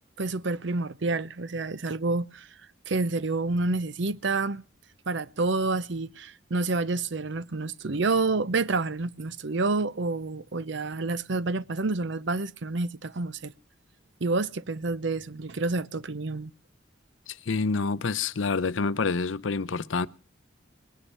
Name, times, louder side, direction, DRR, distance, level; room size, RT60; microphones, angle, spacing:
voice 1, 0.2-2.5 2.9-4.6 5.1-13.5 14.2-16.5, right 3 dB, 65° right, 0.7 m, -28 dB
voice 2, 17.3-20.1, left 4 dB, 75° left, 0.6 m, -27 dB
20.0 x 10.0 x 5.5 m
head